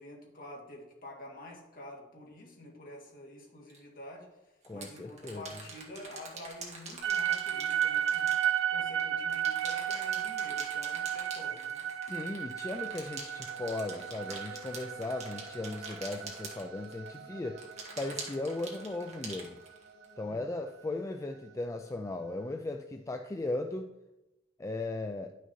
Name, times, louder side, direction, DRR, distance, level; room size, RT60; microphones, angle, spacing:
voice 1, 0.0-4.3 4.7-8.4 8.7-11.8 20.2-20.4, left 1 dB, 50° left, -2 dB, 1.9 m, -48 dB
sound 1, 3.7-3.8 4.6-9.0 9.3-17.1 17.6-20.0, right 4 dB, 35° right, 1.5 m, -45 dB
voice 2, 4.6-5.4 12.1-17.6 18.0-19.6 20.2-23.9 24.6-25.3, left 2 dB, 15° left, 5 dB, 0.3 m, -37 dB
sound 2, 7.0-19.2, right 9 dB, 85° right, 0.4 m, -34 dB
sound 3, 12.6-22.6, right 1 dB, 60° right, 1.1 m, -54 dB
11.0 x 6.1 x 2.8 m, 0.97 s
head